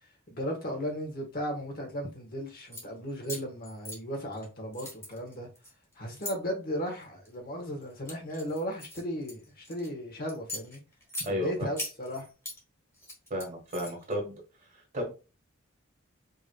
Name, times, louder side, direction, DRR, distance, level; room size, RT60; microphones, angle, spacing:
voice 1, 0.3-5.5 6.0-10.8 11.3-12.3, equal, 45° left, 1.4 m, -35 dB
sound 1, 2.6-2.8 3.2-4.4 4.7-6.3 7.0-7.3 7.8-9.9 10.3-11.3 11.8-12.6 12.9-14.1, left 2 dB, 15° left, 1.4 m, -40 dB
voice 2, 11.2-11.7 13.3-14.3 14.7-15.1, equal, 40° right, 1.3 m, -33 dB
5.4 x 3.1 x 2.2 m
head